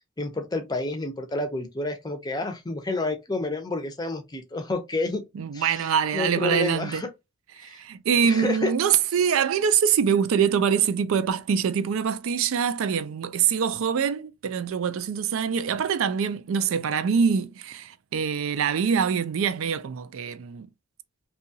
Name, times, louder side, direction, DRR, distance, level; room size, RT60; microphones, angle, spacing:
voice 1, 0.2-5.2 5.5-5.9 6.1-7.1 7.6-7.8 8.2-8.7, left 2 dB, 20° left, 0.5 m, -29 dB
voice 2, 5.4-7.0 7.6-20.7, right 7 dB, 75° right, 0.4 m, -24 dB
2.8 x 2.3 x 2.6 m
head